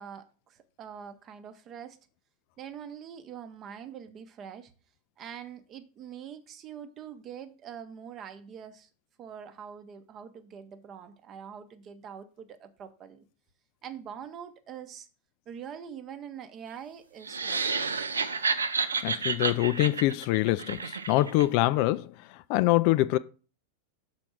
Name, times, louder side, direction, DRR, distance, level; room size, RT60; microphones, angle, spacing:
voice 1, 0.0-2.0 2.6-4.7 5.2-8.9 9.2-13.2 13.8-15.1 15.5-17.6, right 8 dB, 30° right, 0.8 m, -44 dB
sound 1, 17.2-21.5, right 5 dB, 75° right, 0.5 m, -30 dB
voice 2, 19.0-22.1 22.5-23.2, left 17 dB, 45° left, 0.3 m, -24 dB
6.1 x 4.3 x 6.1 m
figure-of-eight pair, 90°, 0 cm